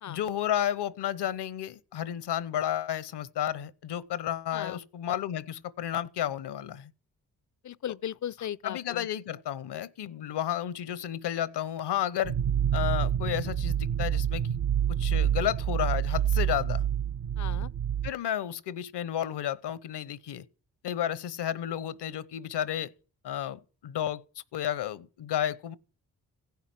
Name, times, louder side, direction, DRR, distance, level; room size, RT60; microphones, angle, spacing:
voice 1, 0.1-6.9 8.6-12.3 12.7-14.6 14.9-16.9 18.0-20.5 20.8-22.9 23.2-24.2 24.5-25.8, left 11 dB, 70° left, 0.9 m, -32 dB
voice 2, 4.5-4.8 7.6-9.1 17.4-17.7, left 10 dB, 45° left, 0.6 m, -37 dB
sound 1, 12.2-18.1, right 9 dB, 45° right, 0.6 m, -27 dB
15.5 x 5.9 x 7.6 m
supercardioid pair, 45°, 42 cm